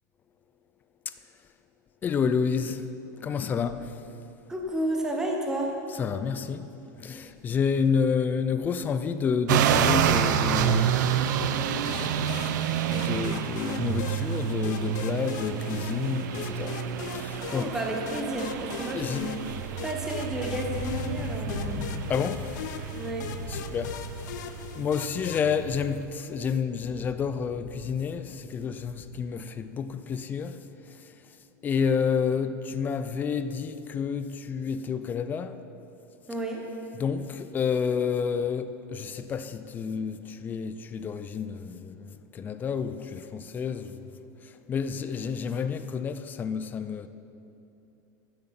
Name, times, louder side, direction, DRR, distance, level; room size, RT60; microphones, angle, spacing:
voice 1, 2.0-2.9 3.2-3.9 5.9-6.7 7.0-11.0 11.4-16.8 17.1-17.8 18.9-19.3 22.1-22.5 23.5-24.0 24.8-30.6 31.6-35.6 36.9-44.0 44.7-47.1, left 6 dB, 20° left, 0.4 m, -30 dB
voice 2, 4.5-5.8 17.5-19.3 19.8-21.9 22.9-23.3 36.3-36.6, right 1 dB, 5° right, 0.9 m, -31 dB
sound 1, 9.5-26.0, right 9 dB, 70° right, 0.6 m, -29 dB
sound 2, 11.8-25.6, left 9 dB, 70° left, 0.8 m, -41 dB
sound 3, 16.6-16.8 17.3-26.1 26.4-29.3, left 3 dB, 90° left, 1.5 m, -40 dB
13.5 x 7.9 x 5.8 m
supercardioid pair, 160°, 10 cm